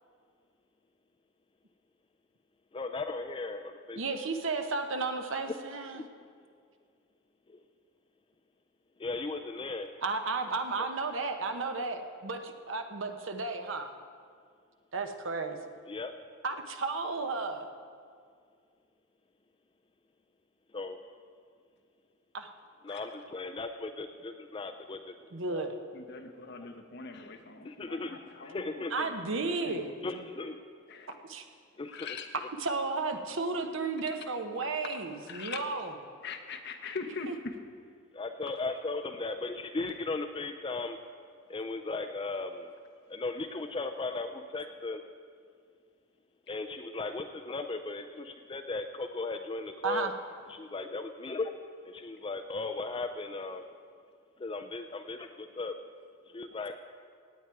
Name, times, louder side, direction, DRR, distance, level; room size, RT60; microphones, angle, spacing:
voice 1, 2.7-4.2 5.5-5.6 7.5-7.6 9.0-9.8 15.9-16.1 20.7-21.0 22.8-25.1 25.5-25.7 27.6-29.1 30.0-30.6 31.8-32.1 38.1-41.0 41.5-42.7 43.1-45.0 46.5-50.1 50.5-51.5 51.8-53.6 54.4-55.8 56.3-56.8, left 3 dB, 25° left, 7 dB, 0.4 m, -37 dB
voice 2, 4.0-6.0 10.0-13.9 14.9-15.6 16.4-17.7 22.3-22.5 25.3-25.8 28.9-29.9 31.2-31.4 32.6-35.9 37.3-37.4 49.8-50.1, right 3 dB, 65° right, 6 dB, 0.9 m, -33 dB
voice 3, 25.9-29.2 29.6-30.3 30.9-31.1 31.9-32.3 34.8-35.0 35.3-35.7 36.2-37.6 38.5-38.6, left 4 dB, 50° left, 5 dB, 1.0 m, -42 dB
17.0 x 9.0 x 4.7 m, 2.2 s
head